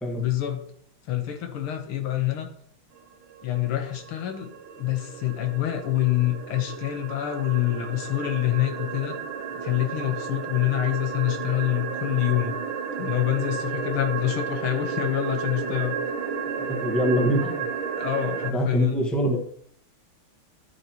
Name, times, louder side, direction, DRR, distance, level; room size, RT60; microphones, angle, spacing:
voice 1, 0.1-0.6 1.1-2.5 3.4-4.5 4.8-9.2 9.5-12.6 13.0-16.0 18.0-19.0, left 14 dB, 85° left, 6 dB, 2.0 m, -26 dB
sound 1, 3.0-18.5, right 6 dB, 75° right, 1.7 m, -33 dB
voice 2, 16.6-17.6 18.5-19.4, equal, ahead, 1 dB, 1.1 m, -24 dB
11.0 x 8.3 x 3.0 m, 0.65 s
omnidirectional pair, 2.3 m